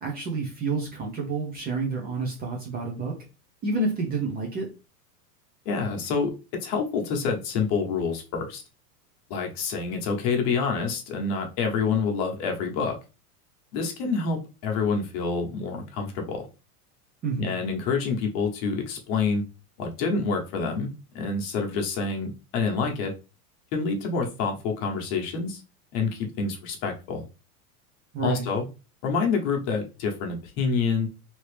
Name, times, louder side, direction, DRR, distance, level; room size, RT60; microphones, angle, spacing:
voice 1, 0.0-3.1 3.6-4.7 17.2-17.5 28.1-28.5, right 3 dB, 20° right, 0 dB, 0.6 m, -29 dB
voice 2, 5.6-6.3 6.6-8.6 9.3-13.0 13.7-16.5 17.4-19.4 19.8-23.1 23.7-25.6 25.9-27.2 28.2-28.6 29.0-31.1, left 5 dB, 45° left, 3 dB, 1.0 m, -27 dB
2.9 x 2.8 x 3.2 m, 0.31 s
supercardioid pair, 140°, 46 cm